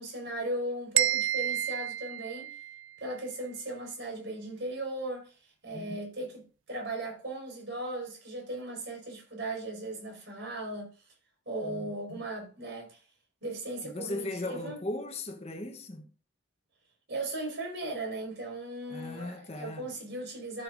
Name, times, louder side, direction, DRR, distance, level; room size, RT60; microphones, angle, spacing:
voice 1, 0.0-2.5 3.0-5.3 5.6-10.9 11.4-13.0 13.4-14.8 17.1-20.6, right 1 dB, 65° right, 4.8 m, -37 dB
sound 1, 1.0-3.0, right 13 dB, 90° right, 0.5 m, -30 dB
voice 2, 11.6-12.2 13.8-16.1 18.9-19.9, left 2 dB, 30° left, 1.0 m, -38 dB
14.0 x 6.8 x 2.5 m
head